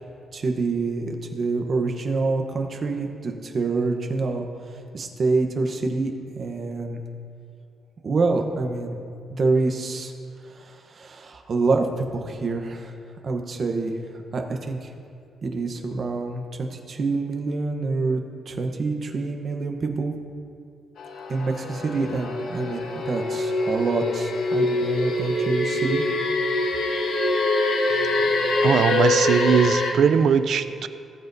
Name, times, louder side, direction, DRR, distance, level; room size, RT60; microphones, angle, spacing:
voice 1, 0.3-4.5 4.9-7.0 8.0-9.0 9.3-10.1 10.5-12.9 13.2-14.0 14.3-14.9 15.4-20.2 21.3-26.0, right 3 dB, 40° right, 4 dB, 0.9 m, -26 dB
sound 1, 21.0-29.9, left 2 dB, 70° left, 1.1 m, -24 dB
voice 2, 28.6-30.9, right 7 dB, 65° right, 12 dB, 0.4 m, -20 dB
18.5 x 7.6 x 2.7 m, 2.4 s
cardioid pair, 145°, 0 cm